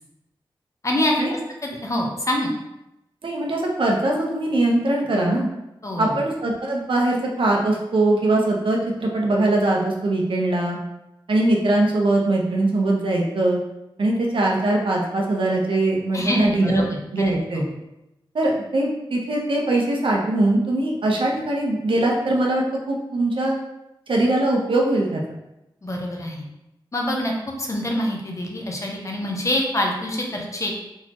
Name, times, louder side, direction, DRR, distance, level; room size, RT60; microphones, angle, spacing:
voice 1, 0.8-2.5 5.8-6.2 16.1-16.8 17.2-17.7 25.8-26.4 26.9-27.3 27.6-30.7, left 1 dB, 35° left, 0 dB, 0.9 m, -25 dB
voice 2, 3.2-5.5 6.0-10.8 11.3-13.6 14.0-17.7 18.3-23.6 24.1-25.2, right 2 dB, 75° right, -1 dB, 0.9 m, -21 dB
4.2 x 4.0 x 3.0 m, 0.91 s
wide cardioid pair, 85°, 9 cm